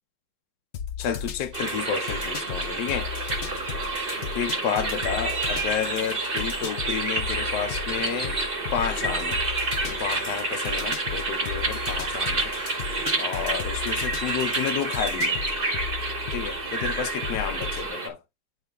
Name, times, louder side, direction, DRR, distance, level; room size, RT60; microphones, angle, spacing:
sound 1, 0.7-17.9, left 8 dB, 55° left, 0.8 m, -36 dB
voice 1, 1.0-3.1 4.3-8.4 8.7-9.4 9.8-12.5 13.2-15.4 16.3-18.2, left 8 dB, 70° left, 1.4 m, -31 dB
sound 2, 1.5-18.1, right 3 dB, 35° right, 1.4 m, -29 dB
9.4 x 3.6 x 3.5 m
omnidirectional pair, 1.9 m